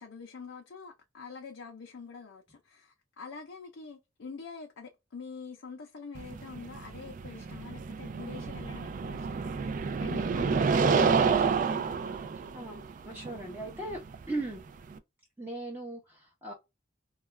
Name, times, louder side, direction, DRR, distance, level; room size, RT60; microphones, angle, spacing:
voice 1, 0.0-9.5 10.0-12.3, left 5 dB, 85° left, 0.5 m, -45 dB
sound 1, 6.1-15.0, right 5 dB, 45° right, 0.3 m, -29 dB
voice 2, 12.5-14.0 14.3-14.6 15.4-16.5, right 2 dB, 10° right, 0.6 m, -38 dB
2.3 x 2.2 x 3.1 m
head